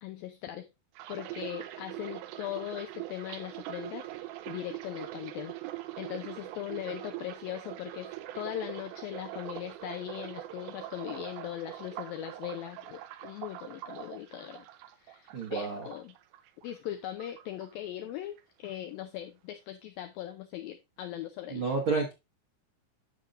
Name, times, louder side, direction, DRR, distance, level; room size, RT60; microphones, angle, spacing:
voice 1, 0.0-0.7 1.1-14.7 15.0-16.2 16.6-21.6, left 12 dB, 85° left, 6 dB, 2.1 m, -40 dB
sound 1, 1.0-16.9 17.2-18.1 18.4-18.7, right 14 dB, 85° right, 2.9 m, -43 dB
voice 2, 15.3-15.8 21.5-22.1, right 4 dB, 65° right, -1 dB, 1.2 m, -30 dB
9.7 x 7.2 x 2.5 m, 0.24 s
omnidirectional pair, 4.9 m